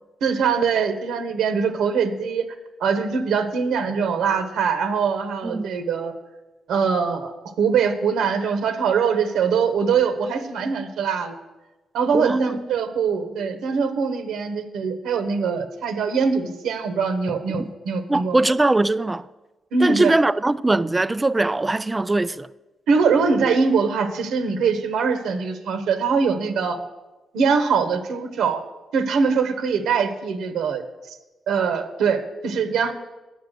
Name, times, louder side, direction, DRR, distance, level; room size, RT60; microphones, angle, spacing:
voice 1, 0.2-2.4 2.8-6.1 6.7-11.4 11.9-18.4 19.7-20.1 22.9-26.8 27.3-28.6 28.9-30.8 31.5-32.9, right 5 dB, 90° right, 1.1 m, -22 dB
voice 2, 12.1-12.6 17.6-17.7 18.1-19.3 19.8-22.5, right 2 dB, 15° right, 0.3 m, -21 dB
9.4 x 6.9 x 6.5 m
cardioid pair, 95°, 0 cm